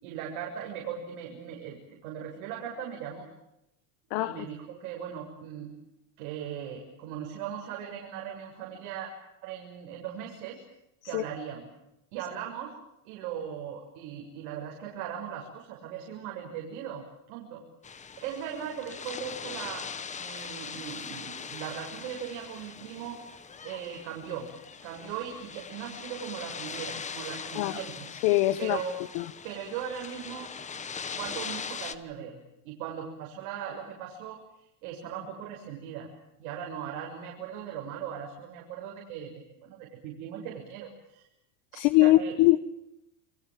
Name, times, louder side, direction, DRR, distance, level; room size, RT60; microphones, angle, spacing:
voice 1, 0.0-3.3 4.2-5.7 6.2-9.1 9.4-10.6 11.0-11.7 12.1-12.7 13.1-24.5 24.8-28.1 28.6-29.0 29.4-34.4 34.8-36.1 36.4-41.2 42.0-42.4, right 8 dB, 70° right, 6.9 m, -39 dB
voice 2, 4.1-4.5 11.0-11.2 27.5-27.8 28.2-28.8 29.1-29.2 41.7-42.6, left 17 dB, 60° left, 1.3 m, -22 dB
sound 1, 17.8-31.9, left 6 dB, 15° left, 1.3 m, -41 dB
29.5 x 25.0 x 7.6 m
supercardioid pair, 150°, 44 cm